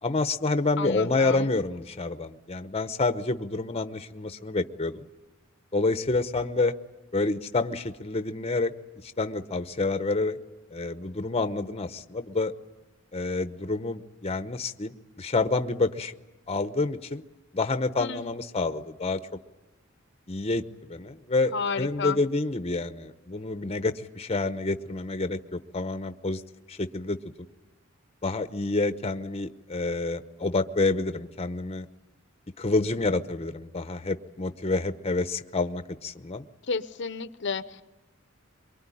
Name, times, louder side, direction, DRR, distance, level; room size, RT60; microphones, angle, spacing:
voice 1, 0.0-5.1 5.7-6.7 7.1-8.7 9.0-10.4 10.7-12.5 13.1-16.1 16.5-17.2 17.5-19.2 20.3-26.4 26.7-27.2 28.2-31.9 32.6-36.5, left 3 dB, 30° left, 11 dB, 0.9 m, -28 dB
voice 2, 0.8-1.5 18.0-18.3 21.5-22.2 36.7-37.8, left 5 dB, 60° left, 13 dB, 0.8 m, -31 dB
23.5 x 23.0 x 9.9 m, 1.1 s
head